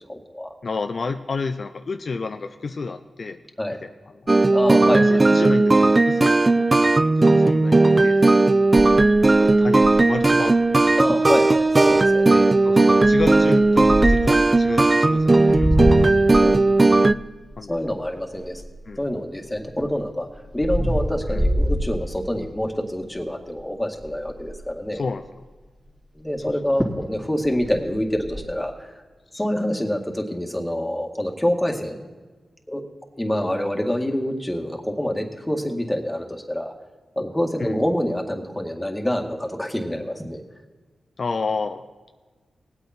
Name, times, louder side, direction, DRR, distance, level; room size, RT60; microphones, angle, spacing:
voice 1, 0.1-0.5 3.6-3.8 4.5-5.2 11.0-12.5 16.4-16.9 17.7-18.6 19.0-20.3 20.5-25.1 26.2-28.9 29.3-32.0 32.7-32.8 33.2-36.7 37.2-40.4, left 1 dB, 10° left, 2 dB, 2.0 m, -26 dB
voice 2, 0.6-3.4 3.7-3.9 5.0-6.7 7.2-8.3 9.4-10.8 12.6-16.1 17.6-17.8 18.9-19.0 21.3-21.5 24.9-25.2 26.5-26.7 29.3-29.4 37.6-37.8 41.2-41.8, left 4 dB, 60° left, 7 dB, 0.5 m, -30 dB
sound 1, 4.3-17.1, right 2 dB, 30° right, 0.4 m, -16 dB
sound 2, 8.8-10.2 10.8-10.9 11.1-11.4 11.9-12.2 13.0-14.5 15.2-19.1 19.5-22.6 23.0-23.3 23.6-23.7 24.0-24.7 26.4-26.5 26.8-27.1 27.4-28.4, equal, 10° right, 2.5 m, -26 dB
19.0 x 8.2 x 4.4 m, 1.3 s
cardioid pair, 50°, 0 cm